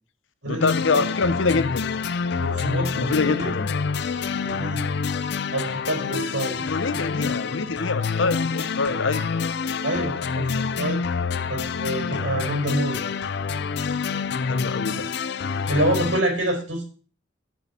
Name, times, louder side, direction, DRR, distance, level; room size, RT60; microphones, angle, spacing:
voice 1, 0.4-1.9 2.9-3.7 6.6-9.3 14.5-15.1, left 4 dB, 90° left, 0.8 m, -25 dB
sound 1, 0.6-16.2, left 5 dB, 60° left, 0.5 m, -27 dB
voice 2, 2.3-3.5 4.3-5.0 5.5-6.6 9.8-11.1 11.5-13.0 15.7-16.8, right 1 dB, 90° right, 4.6 m, -27 dB
9.5 x 6.3 x 4.3 m
head